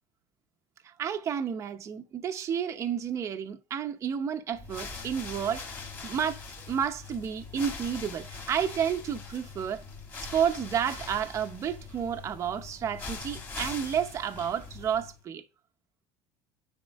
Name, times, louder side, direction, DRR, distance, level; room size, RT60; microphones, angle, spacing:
voice 1, 0.8-9.8 10.2-15.4, right 8 dB, 25° right, 0.7 m, -31 dB
sound 1, 4.5-15.2, left 4 dB, 20° left, 2.3 m, -42 dB
9.7 x 4.4 x 6.1 m
cardioid pair, 165°, 11 cm